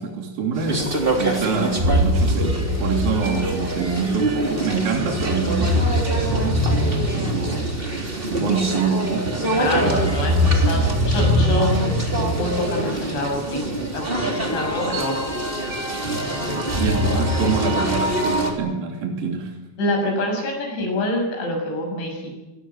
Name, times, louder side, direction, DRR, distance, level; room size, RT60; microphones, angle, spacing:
voice 1, 0.0-10.1 11.2-11.4 16.7-19.5, right 5 dB, 55° right, 1 dB, 4.5 m, -26 dB
sound 1, 0.5-18.5, equal, 15° right, 3.1 m, -23 dB
voice 2, 9.6-13.6 13.9-15.2 16.0-16.7 16.9-17.3 19.8-22.3, left 1 dB, 85° left, 3 dB, 9.5 m, -26 dB
25.5 x 19.0 x 9.3 m, 1.0 s
omnidirectional pair, 5.1 m